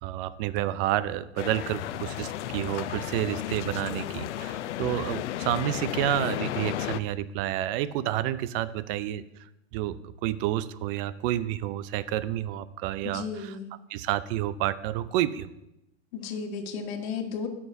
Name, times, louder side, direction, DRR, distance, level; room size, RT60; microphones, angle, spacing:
voice 1, 0.0-9.2 9.7-13.2 13.9-15.5, right 13 dB, 55° right, 16 dB, 0.6 m, -29 dB
sound 1, 1.4-7.0, left 13 dB, 85° left, 0.5 m, -33 dB
voice 2, 13.0-13.7 16.1-17.5, left 5 dB, 60° left, 2 dB, 1.5 m, -34 dB
17.0 x 6.0 x 2.7 m, 0.89 s
hypercardioid pair, 120°, 34 cm